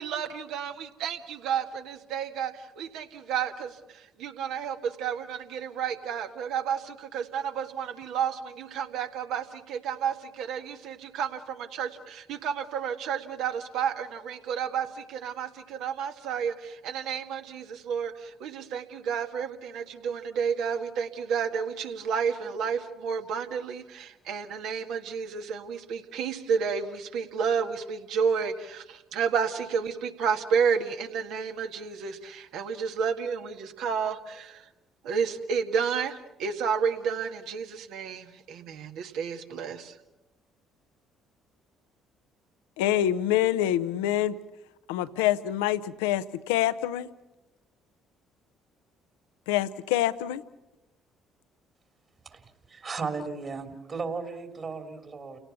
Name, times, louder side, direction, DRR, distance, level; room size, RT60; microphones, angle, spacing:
voice 1, 0.0-34.7 35.0-40.0, right 7 dB, 70° right, 1.7 m, -31 dB
voice 2, 42.8-44.4 44.9-47.1 49.5-50.4, left 12 dB, 80° left, 0.8 m, -26 dB
voice 3, 52.7-55.4, right 4 dB, 45° right, 3.1 m, -35 dB
30.0 x 18.0 x 7.0 m
hypercardioid pair, 55°, 0 cm